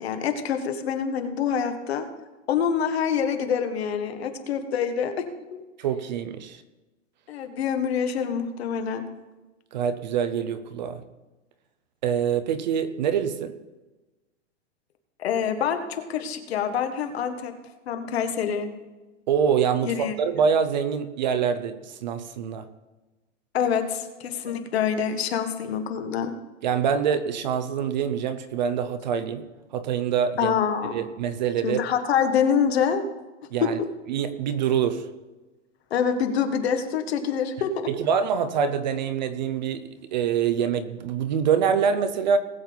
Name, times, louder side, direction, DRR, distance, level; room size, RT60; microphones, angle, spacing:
voice 1, 0.0-2.0 2.5-5.1 5.5-5.6 7.3-9.0 15.2-17.5 17.9-18.7 19.8-20.1 23.5-26.3 30.4-31.0 31.6-33.1 33.6-33.7 35.9-37.7, left 7 dB, 60° left, 7 dB, 1.6 m, -26 dB
voice 2, 5.8-6.6 9.7-11.0 12.0-13.6 19.3-22.7 24.5-24.6 26.6-29.5 29.7-30.6 30.9-31.8 33.5-33.8 34.1-35.1 37.9-42.4, right 7 dB, 40° right, 12 dB, 0.7 m, -25 dB
19.5 x 7.4 x 4.0 m, 1.1 s
supercardioid pair, 180°, 36 cm